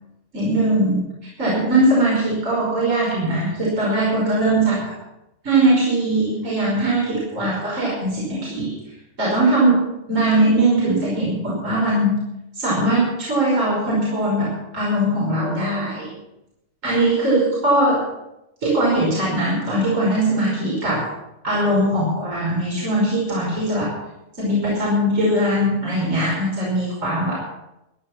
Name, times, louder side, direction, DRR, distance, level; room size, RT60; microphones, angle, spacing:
voice 1, 0.3-1.1 1.4-4.9 5.4-8.7 9.2-12.2 12.5-16.1 16.8-18.1 18.6-21.1 21.4-23.9 24.4-27.4, right 1 dB, 35° right, -5 dB, 5.9 m, -20 dB
16.5 x 11.0 x 6.0 m, 0.89 s
omnidirectional pair, 2.4 m